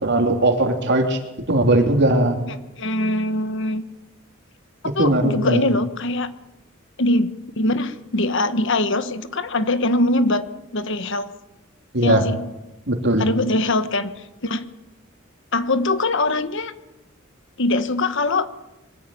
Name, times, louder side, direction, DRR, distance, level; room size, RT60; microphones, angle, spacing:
voice 1, 0.0-1.2 1.5-2.4 5.0-5.7 11.9-12.2 12.9-13.3, right 1 dB, 55° right, 4 dB, 3.2 m, -18 dB
voice 2, 2.5-3.8 4.9-6.3 7.0-7.3 7.6-10.5 10.7-11.3 12.0-12.4 13.2-14.6 15.5-16.7 17.6-18.5, left 2 dB, 65° left, 12 dB, 1.3 m, -22 dB
23.0 x 14.5 x 9.2 m, 0.96 s
head